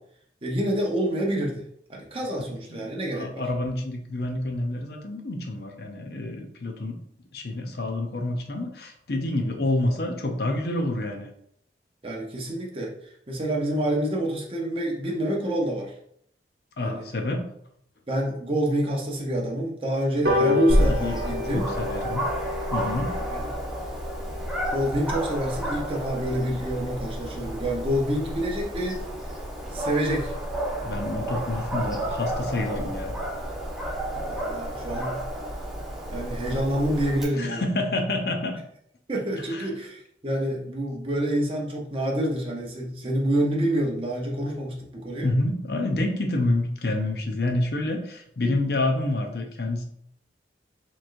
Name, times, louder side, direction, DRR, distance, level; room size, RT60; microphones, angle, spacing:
voice 1, 0.4-1.6 1.9-3.4 12.0-12.9 13.3-15.9 16.8-17.0 18.1-21.7 23.3-23.5 24.7-29.0 29.7-30.3 34.3-35.2 36.1-37.6 39.1-45.3, right 1 dB, 30° right, -2 dB, 0.7 m, -27 dB
voice 2, 2.4-7.0 7.3-11.3 16.8-17.5 20.4-22.2 22.7-23.2 30.8-33.1 37.4-38.5 39.5-39.7 45.2-49.8, left 2 dB, 60° left, 3 dB, 0.6 m, -28 dB
sound 1, 20.2-27.0 27.4-27.5 27.8-27.9 28.2-28.3 28.6-28.7 29.0-29.3 29.7-29.8, left 3 dB, 60° right, 1.1 m, -31 dB
Dog, 20.7-37.2, equal, 5° right, 0.9 m, -30 dB
4.4 x 3.1 x 2.5 m, 0.69 s
head